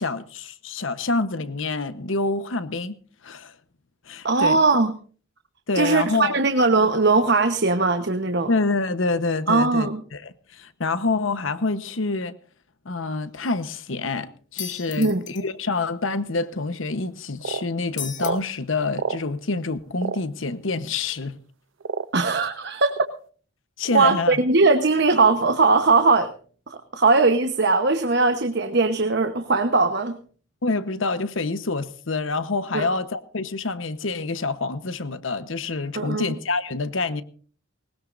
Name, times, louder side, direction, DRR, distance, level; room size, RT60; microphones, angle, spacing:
voice 1, 0.0-3.0 3.2-3.6 4.1-4.6 5.7-6.4 8.5-12.3 12.8-21.4 23.8-24.4 30.6-37.2, left 3 dB, 80° left, 1.1 m, -27 dB
voice 2, 4.2-4.9 5.7-8.5 9.5-10.0 15.0-15.2 22.1-22.9 23.9-26.3 26.7-30.2 32.7-32.9 35.9-36.3, right 3 dB, 55° right, 1.1 m, -20 dB
sound 1, 14.6-15.4 18.0-18.3, left 9 dB, 40° left, 1.8 m, -34 dB
sound 2, 16.7-16.8 17.4-17.7 18.2-18.4 18.9-19.2 20.0-20.2 21.1-21.2 21.8-22.3 22.9-23.1, right 5 dB, 75° right, 0.6 m, -29 dB
20.0 x 19.5 x 2.6 m
head